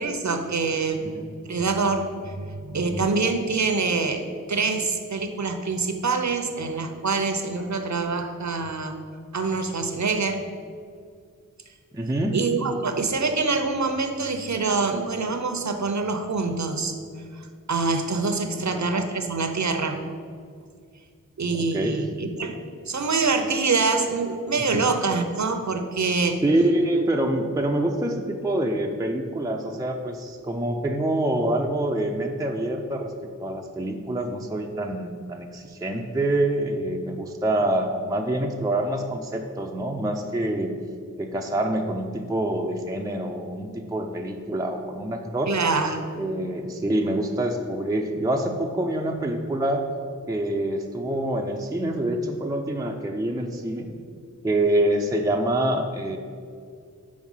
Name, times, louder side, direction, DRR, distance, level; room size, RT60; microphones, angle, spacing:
voice 1, 0.0-1.0 1.4-4.2 4.5-9.0 9.3-10.4 12.3-16.9 17.3-20.0 21.4-22.6 22.9-26.4 45.5-46.0, right 4 dB, 60° right, 6 dB, 0.8 m, -25 dB
voice 2, 11.9-12.4 18.5-18.8 21.6-22.0 24.7-24.9 26.4-33.1 33.4-40.7 41.2-45.5 46.1-49.9 50.3-53.9 54.4-56.2, right 1 dB, 10° right, 2 dB, 0.5 m, -26 dB
6.1 x 4.7 x 5.5 m, 2.2 s
wide cardioid pair, 40°, 33 cm